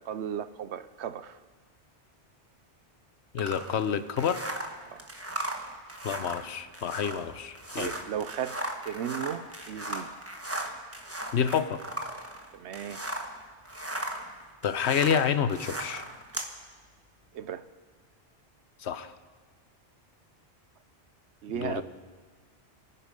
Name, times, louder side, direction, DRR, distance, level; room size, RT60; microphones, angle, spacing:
voice 1, 0.0-1.4 4.9-5.1 7.8-10.1 12.5-13.0 17.3-17.7 21.4-21.8, right 9 dB, 80° right, 1.0 m, -35 dB
voice 2, 3.3-4.4 6.0-7.9 11.3-11.8 14.6-16.0 18.8-19.1 21.5-21.8, left 7 dB, 75° left, 1.0 m, -28 dB
sound 1, 3.4-13.4 13.6-16.5, right 1 dB, 15° right, 1.3 m, -37 dB
27.5 x 9.9 x 5.2 m
omnidirectional pair, 1.1 m